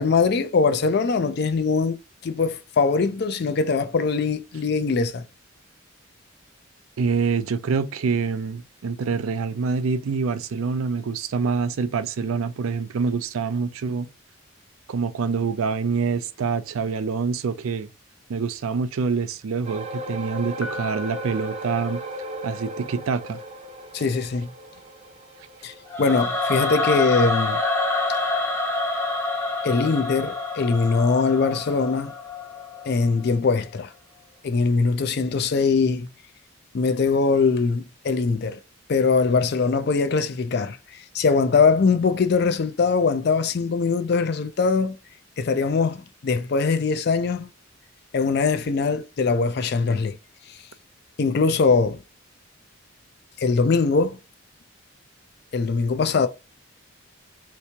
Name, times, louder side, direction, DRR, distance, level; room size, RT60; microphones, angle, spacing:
voice 1, 0.0-5.3 23.9-24.5 25.6-27.6 29.6-32.1 32.9-33.9 34.4-36.1 36.7-38.6 38.9-45.0 45.4-47.5 48.1-50.2 50.5-50.6 51.2-52.0 53.4-54.2 55.5-56.3, left 4 dB, 50° left, 0.4 m, -22 dB
voice 2, 7.0-14.1 14.9-17.9 18.3-22.0 22.4-23.4, right 5 dB, 75° right, 0.4 m, -26 dB
sound 1, 19.6-32.3 32.7-32.9 33.4-33.5, right 1 dB, 30° right, 0.6 m, -39 dB
Piano, 20.6-22.7, left 2 dB, 70° left, 0.7 m, -40 dB
Singing / Musical instrument, 25.9-33.0, left 2 dB, 10° left, 0.6 m, -27 dB
3.3 x 3.0 x 2.7 m
head